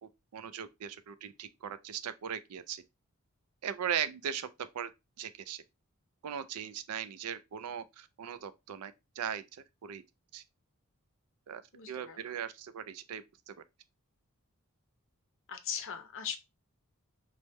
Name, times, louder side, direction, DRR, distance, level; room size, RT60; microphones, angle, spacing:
voice 1, 0.0-2.8 3.6-4.5 4.7-4.9 5.2-5.6 6.2-10.0 10.3-10.4 11.5-11.6 11.9-13.5, right 8 dB, 85° right, 0.4 m, -39 dB
voice 2, 11.7-12.3 15.5-16.4, left 8 dB, 60° left, 0.5 m, -39 dB
3.3 x 2.2 x 3.0 m
head